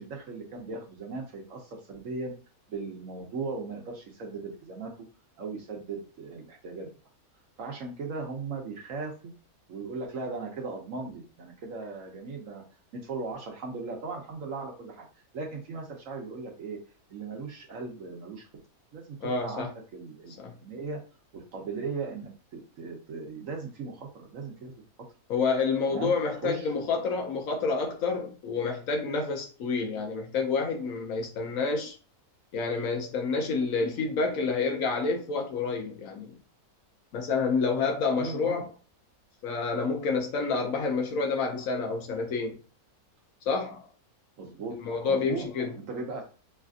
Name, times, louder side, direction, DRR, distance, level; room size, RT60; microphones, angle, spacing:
voice 1, 0.0-2.3 2.7-4.9 5.4-6.9 7.6-9.3 9.7-12.6 12.9-15.0 15.3-16.8 17.1-18.5 18.9-20.3 20.6-21.0 21.3-24.7 25.9-26.1 26.4-26.9 38.2-38.6 44.4-44.7 45.1-45.5 45.9-46.3, right 4 dB, 65° right, 1.1 m, -37 dB
voice 2, 19.2-19.7 20.4-20.6 25.3-32.0 32.5-36.3 37.1-38.7 39.4-42.6 43.5-43.8 44.8-45.7, left 4 dB, 70° left, 1.0 m, -28 dB
3.3 x 2.4 x 2.4 m
omnidirectional pair, 1.6 m